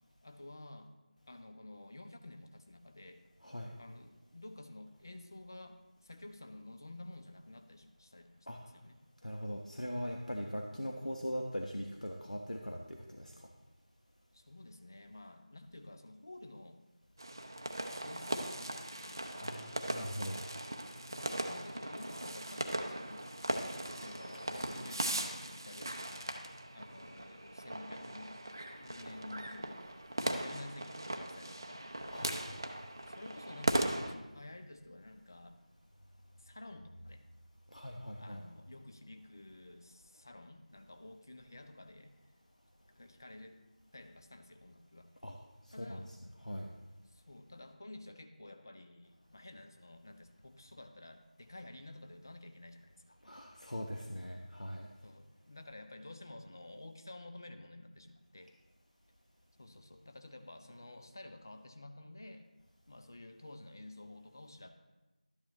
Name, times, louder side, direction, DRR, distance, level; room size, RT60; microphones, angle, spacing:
voice 1, 0.2-0.9 1.3-3.2 3.8-9.0 14.3-16.8 18.0-19.5 21.1-26.4 26.7-28.4 28.8-29.7 30.2-32.4 33.1-35.6 36.4-37.2 38.2-42.1 42.9-43.6 43.9-45.1 45.7-46.1 47.1-53.2 55.0-58.5 59.6-62.5 62.9-64.7, left 2 dB, 30° left, 7 dB, 0.6 m, -51 dB
voice 2, 3.4-3.8 8.5-8.6 9.2-13.5 19.4-20.4 24.3-24.4 32.1-32.8 37.7-38.4 45.2-45.4 45.6-46.7 53.2-54.9, equal, 75° left, 1 dB, 1.1 m, -41 dB
sound 1, 17.2-34.1, right 1 dB, 30° right, 0.6 m, -39 dB
12.5 x 10.0 x 3.1 m, 1.1 s
figure-of-eight pair, 170°, 4 cm